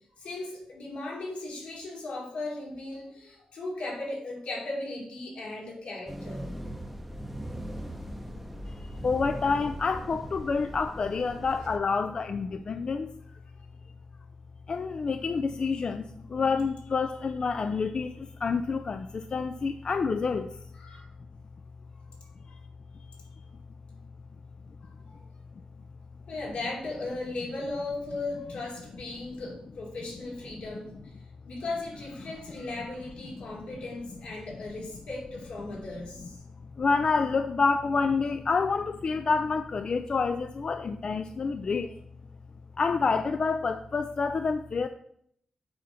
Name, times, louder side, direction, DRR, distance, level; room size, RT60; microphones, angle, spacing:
voice 1, 0.2-6.4 20.8-21.1 26.3-30.9 31.4-36.4, left 2 dB, 75° left, -2 dB, 2.7 m, -37 dB
sound 1, 6.1-11.8, equal, 5° right, 0.7 m, -39 dB
voice 2, 9.0-13.1 14.7-16.0 16.3-18.1 18.4-19.0 19.3-20.5 36.8-41.9 42.8-44.9, left 4 dB, 40° left, 9 dB, 0.3 m, -28 dB
7.6 x 4.1 x 5.6 m, 0.69 s
wide cardioid pair, 140°, 2 cm